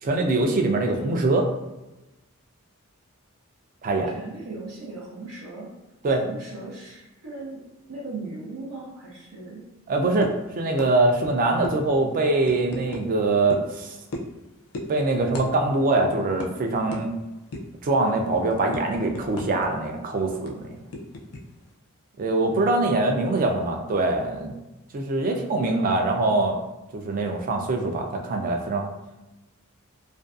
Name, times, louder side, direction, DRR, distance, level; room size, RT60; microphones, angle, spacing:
voice 1, 0.0-1.5 3.8-4.2 6.0-6.2 9.9-14.0 14.9-17.1 17.8-20.8 22.2-24.5 24.9-26.6 26.9-28.9, right 2 dB, 40° right, 3 dB, 0.3 m, -23 dB
voice 2, 4.1-5.7 6.1-7.6 7.9-9.6 23.1-23.5, right 3 dB, 80° right, -5 dB, 0.7 m, -38 dB
sound 1, 10.2-10.4 10.8-10.9 11.2-11.3 11.6-11.8 12.4-13.0 13.5-13.7 14.1-14.4 14.7-14.9 15.3-15.5 15.8-15.9 16.4-16.5 16.9-17.0 17.5-17.8 18.2-19.7 19.9-20.0 20.5-21.4, left 1 dB, 70° left, 0.4 m, -34 dB
2.5 x 2.2 x 2.3 m, 1.0 s
head